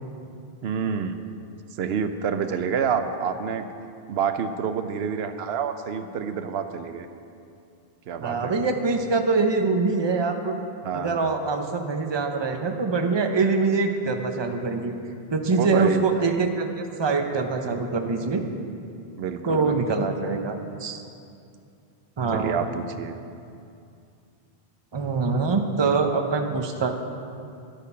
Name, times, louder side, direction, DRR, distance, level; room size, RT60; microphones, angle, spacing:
voice 1, 0.6-1.2 1.8-3.7 4.1-7.1 8.1-8.5 10.8-11.3 15.5-16.2 19.2-20.1 22.3-23.2, right 7 dB, 85° right, 9 dB, 0.9 m, -28 dB
voice 2, 8.2-10.6 10.9-14.9 15.3-18.4 19.4-20.5 20.8-21.0 22.2-22.7 24.9-26.9, right 4 dB, 30° right, 5 dB, 0.7 m, -24 dB
12.0 x 8.4 x 5.6 m, 2.5 s
omnidirectional pair, 1.0 m